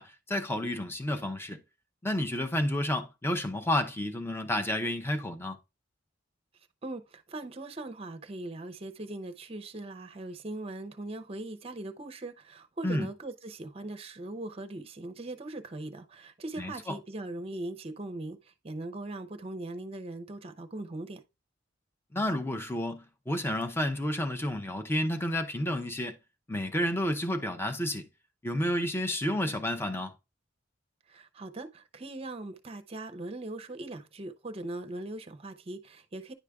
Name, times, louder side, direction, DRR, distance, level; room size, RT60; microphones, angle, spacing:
voice 1, 0.0-1.6 2.0-5.6 12.8-13.1 16.6-17.0 22.1-26.2 26.5-28.1 28.4-30.1, left 1 dB, 10° left, 0.6 m, -30 dB
voice 2, 6.8-21.2 31.1-36.3, right 2 dB, 30° right, 0.6 m, -40 dB
10.0 x 4.9 x 2.3 m
head